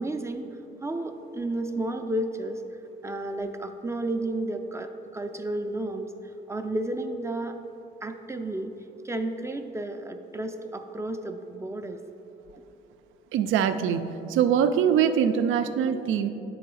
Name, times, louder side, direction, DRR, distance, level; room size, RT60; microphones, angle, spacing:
voice 1, 0.0-2.6 3.0-6.1 6.5-7.6 8.0-8.7 9.0-12.0, right 1 dB, 15° right, 6 dB, 0.4 m, -32 dB
voice 2, 13.3-16.3, right 8 dB, 80° right, 9 dB, 0.4 m, -23 dB
8.9 x 3.9 x 4.7 m, 2.9 s
cardioid pair, 90°, 20 cm